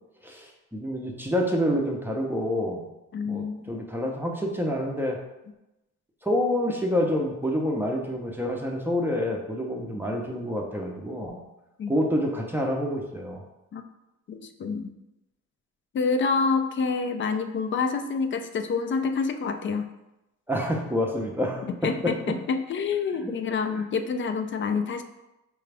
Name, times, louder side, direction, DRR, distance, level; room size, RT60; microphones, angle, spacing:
voice 1, 0.2-2.9 3.3-5.2 6.2-11.4 11.9-13.4 20.5-22.3 23.2-23.3 23.8-23.9, equal, 5° right, -1 dB, 0.6 m, -28 dB
voice 2, 3.1-3.6 11.8-11.9 13.7-13.8 14.3-14.9 15.9-19.9 21.6-25.0, left 5 dB, 40° left, 8 dB, 0.4 m, -27 dB
4.9 x 2.3 x 3.3 m, 0.95 s
cardioid pair, 90°, 30 cm